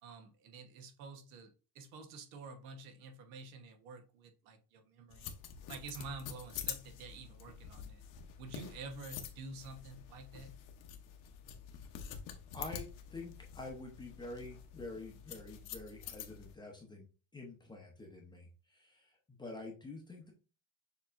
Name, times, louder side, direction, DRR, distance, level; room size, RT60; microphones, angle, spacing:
voice 1, 0.0-5.4 5.7-8.0 8.4-10.5, right 3 dB, 85° right, 1.1 m, -49 dB
sound 1, 5.1-16.5, left 8 dB, 50° left, 0.8 m, -47 dB
voice 2, 13.1-17.1 17.3-20.3, left 2 dB, 10° left, 0.6 m, -47 dB
6.7 x 3.0 x 2.5 m
cardioid pair, 160°, 40 cm